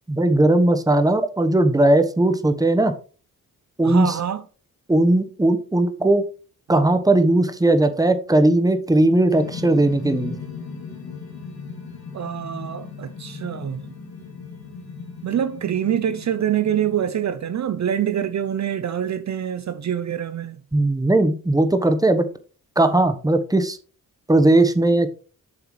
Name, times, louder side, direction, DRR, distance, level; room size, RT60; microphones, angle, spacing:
voice 1, 0.1-2.9 3.8-4.2 4.9-6.2 6.7-10.4 20.7-22.3 22.8-23.8 24.3-25.1, right 2 dB, 10° right, 1.1 m, -18 dB
voice 2, 3.8-4.4 12.1-13.8 15.2-20.6, right 9 dB, 50° right, 0.6 m, -25 dB
sound 1, 9.3-17.7, left 5 dB, 75° left, 2.7 m, -37 dB
8.0 x 6.9 x 3.2 m
cardioid pair, 70°, 36 cm